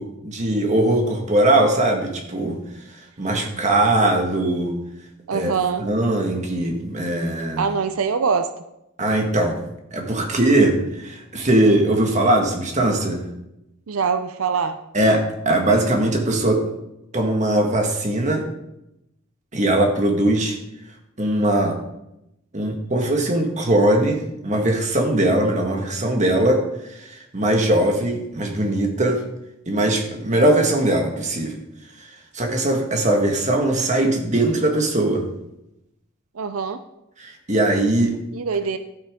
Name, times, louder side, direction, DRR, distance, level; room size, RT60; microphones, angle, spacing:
voice 1, 0.0-2.6 3.2-4.8 5.3-7.6 9.0-9.6 9.9-13.2 14.9-16.6 17.1-18.5 19.5-20.6 21.2-21.8 22.5-26.6 26.9-29.2 29.7-31.6 32.3-35.3 37.2-38.2, right 1 dB, 35° right, 2 dB, 1.7 m, -20 dB
voice 2, 5.3-5.8 7.6-8.5 13.9-14.8 36.4-36.8 38.3-38.8, right 5 dB, 90° right, 10 dB, 0.6 m, -23 dB
12.5 x 8.7 x 3.7 m, 0.86 s
head